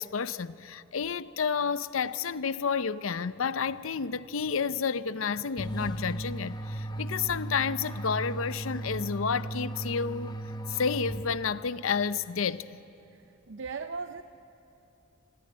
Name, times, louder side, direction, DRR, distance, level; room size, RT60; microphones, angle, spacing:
voice 1, 0.0-10.3 10.7-12.8, left 6 dB, 75° left, 0.6 m, -30 dB
sound 1, 5.6-11.7, right 1 dB, 20° left, 0.9 m, -36 dB
voice 2, 13.1-14.2, right 4 dB, 60° right, 0.6 m, -38 dB
27.0 x 21.5 x 8.6 m
head